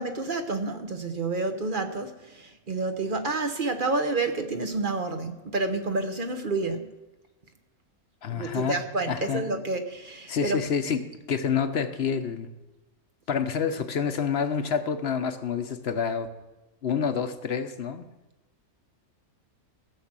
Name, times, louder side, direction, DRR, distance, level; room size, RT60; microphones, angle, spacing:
voice 1, 0.0-6.9 8.3-10.6, right 3 dB, 40° right, 7 dB, 0.9 m, -29 dB
voice 2, 8.2-8.8 9.1-9.4 10.3-11.0 11.3-12.5 13.3-16.3 16.8-18.0, left 6 dB, 50° left, 9 dB, 1.0 m, -28 dB
16.0 x 6.1 x 7.4 m, 1.1 s
omnidirectional pair, 1.6 m